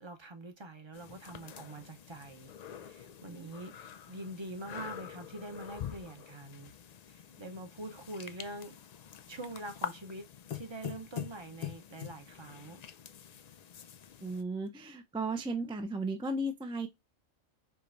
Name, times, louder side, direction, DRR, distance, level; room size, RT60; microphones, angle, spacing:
voice 1, 0.0-2.5 2.8-3.7 4.1-6.7 7.1-8.7 9.3-10.3 10.5-12.8, right 1 dB, 25° right, 0.7 m, -44 dB
sound 1, 0.9-14.4, left 9 dB, 70° left, 0.4 m, -45 dB
voice 2, 14.2-16.9, right 2 dB, 10° right, 0.3 m, -35 dB
4.9 x 3.0 x 2.5 m
omnidirectional pair, 1.2 m